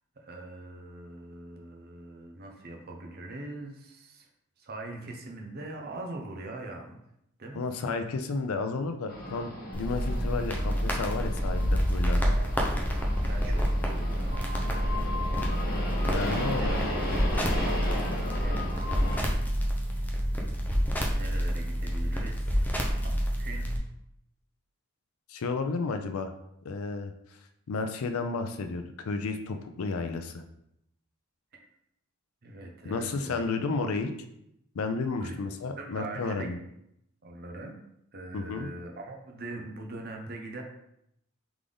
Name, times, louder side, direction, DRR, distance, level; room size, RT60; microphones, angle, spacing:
voice 1, 0.2-4.3 4.6-7.0 7.4-7.6 13.2-14.4 16.0-17.0 18.2-18.6 21.1-22.7 23.0-23.7 31.5-31.6 32.4-33.5 35.2-35.3 35.8-36.5 37.2-37.8 38.1-40.6, right 2 dB, 50° right, 2 dB, 0.7 m, -41 dB
voice 2, 7.6-12.4 16.1-16.7 25.3-26.3 26.6-27.1 27.7-30.4 32.8-34.1 34.7-36.6 38.3-38.7, left 4 dB, 80° left, 6 dB, 0.4 m, -32 dB
sound 1, 9.1-19.2, left 1 dB, 45° left, 1.0 m, -36 dB
sound 2, 9.7-23.8, equal, 10° left, 0.6 m, -28 dB
3.8 x 3.5 x 3.4 m, 0.79 s
head